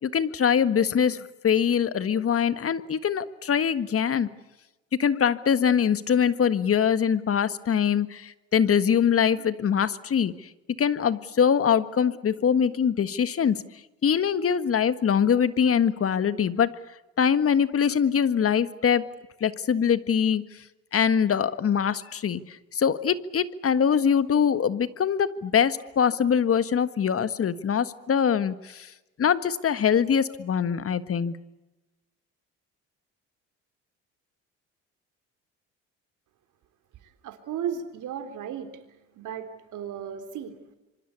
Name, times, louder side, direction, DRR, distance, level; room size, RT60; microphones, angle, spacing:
voice 1, 0.0-4.3 5.0-10.5 10.8-13.6 14.0-16.8 17.2-19.1 19.4-20.4 20.9-28.9 29.2-31.4, left 7 dB, 45° left, 14 dB, 1.6 m, -23 dB
voice 2, 37.0-38.8 39.1-40.8, right 8 dB, 65° right, 8 dB, 3.7 m, -35 dB
26.5 x 24.5 x 8.4 m, 1.0 s
supercardioid pair, 70°, 33 cm